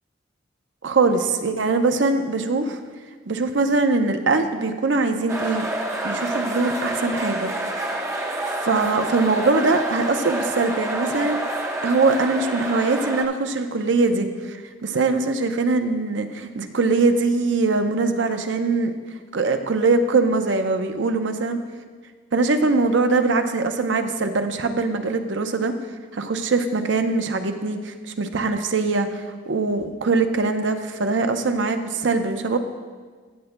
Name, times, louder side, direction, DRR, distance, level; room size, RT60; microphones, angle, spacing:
voice 1, 0.8-2.8 3.3-5.7 6.0-7.5 8.6-11.4 11.8-18.9 19.3-21.6 22.3-25.7 26.1-32.6, right 3 dB, 80° right, 7 dB, 0.6 m, -22 dB
sound 1, 5.3-13.3, right 1 dB, 15° right, 0.7 m, -28 dB
15.5 x 7.9 x 2.2 m, 1.5 s
head